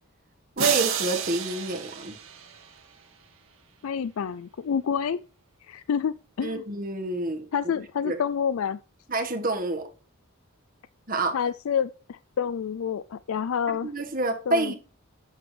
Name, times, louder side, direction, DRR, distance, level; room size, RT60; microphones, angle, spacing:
voice 1, 0.6-2.1 6.4-7.5 8.0-8.1 9.1-9.9 11.1-11.3 13.8-14.8, right 2 dB, 40° right, 1.6 m, -28 dB
sound 1, 0.6-2.9, right 8 dB, 70° right, 2.2 m, -30 dB
voice 2, 3.8-5.2 5.6-6.6 7.5-8.8 11.3-13.9 14.5-14.7, left 7 dB, 75° left, 0.4 m, -28 dB
11.0 x 9.1 x 3.3 m
head